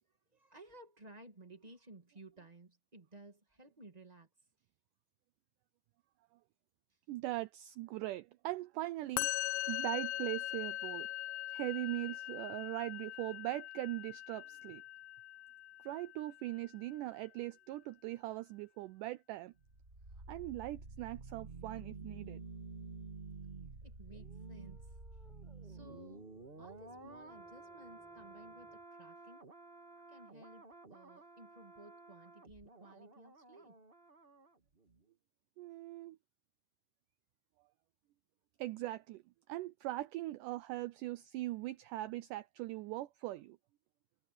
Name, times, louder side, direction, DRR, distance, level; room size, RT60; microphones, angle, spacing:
voice 1, 0.1-4.3 11.2-11.5 23.8-25.0 25.6-26.3 26.6-29.4 30.1-33.8, right 2 dB, 55° right, 0.4 m, -57 dB
voice 2, 7.1-9.3 9.7-11.1 11.5-14.8 15.8-19.5 20.3-22.4 35.6-36.2 38.6-43.6, right 17 dB, 90° right, 1.8 m, -40 dB
Musical instrument, 9.2-16.4, left 16 dB, 80° left, 2.5 m, -41 dB
sound 1, 19.6-34.5 34.8-35.0, right 3 dB, 30° right, 1.0 m, -51 dB
sound 2, 24.0-28.8, equal, ahead, 6.9 m, -66 dB
omnidirectional pair, 4.3 m